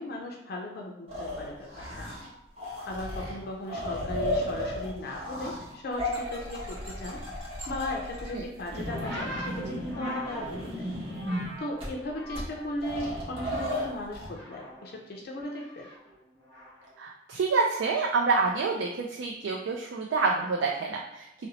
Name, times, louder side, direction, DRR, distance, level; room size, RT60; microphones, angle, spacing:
voice 1, 0.0-2.1 2.9-7.2 7.7-10.9 11.6-15.9, left 1 dB, 55° left, 0 dB, 0.4 m, -37 dB
sound 1, 1.1-2.3 2.6-11.5 11.8-11.9 12.3-12.4 12.8-14.3, left 1 dB, 30° right, 0.9 m, -34 dB
sound 2, 8.8-12.8 13.1-14.0 14.3-16.9 17.8-18.1, equal, 55° right, 1.1 m, -42 dB
voice 2, 17.0-21.5, right 4 dB, 85° right, 0 dB, 0.3 m, -27 dB
2.7 x 2.0 x 3.9 m, 0.91 s
head